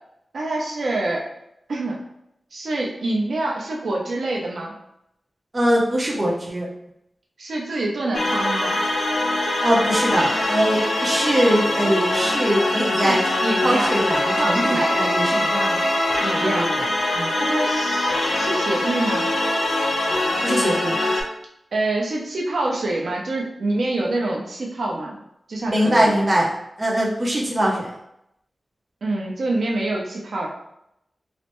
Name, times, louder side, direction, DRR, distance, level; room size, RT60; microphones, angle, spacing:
voice 1, 0.3-1.2 1.7-2.0 2.5-4.7 7.4-8.8 12.9-13.9 14.4-15.1 15.5-15.9 16.2-16.7 17.4-19.3 21.7-25.1 25.5-26.2 29.0-30.5, right 2 dB, 75° right, -2 dB, 0.7 m, -26 dB
voice 2, 5.5-6.7 9.6-15.5 16.4-16.9 17.1-17.3 20.4-20.9 25.6-26.5 26.8-27.9, equal, 30° right, -4 dB, 0.7 m, -22 dB
sound 1, 8.1-21.2, left 1 dB, 75° left, 0.6 m, -22 dB
3.2 x 2.0 x 3.0 m, 0.80 s
wide cardioid pair, 135°, 0 cm